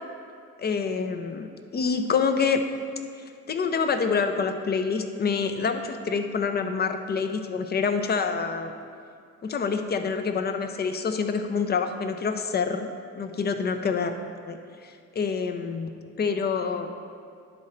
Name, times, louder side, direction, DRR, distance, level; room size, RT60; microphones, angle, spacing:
voice 1, 0.6-2.6 3.5-8.7 9.4-14.2 14.5-15.9 16.2-16.9, left 5 dB, 35° left, 8 dB, 0.6 m, -27 dB
10.5 x 3.8 x 4.3 m, 2.3 s
cardioid pair, 90°, 30 cm